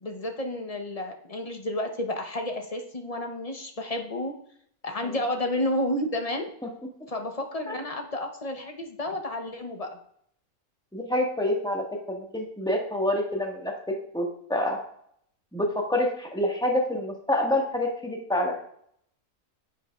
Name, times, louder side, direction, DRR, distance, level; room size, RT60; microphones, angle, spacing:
voice 1, 0.0-4.3 4.8-6.5 7.1-10.0, left 1 dB, 30° left, 4 dB, 0.8 m, -31 dB
voice 2, 10.9-14.8 15.5-18.6, left 1 dB, 5° left, -1 dB, 1.5 m, -27 dB
10.5 x 8.2 x 2.4 m, 0.68 s
omnidirectional pair, 1.5 m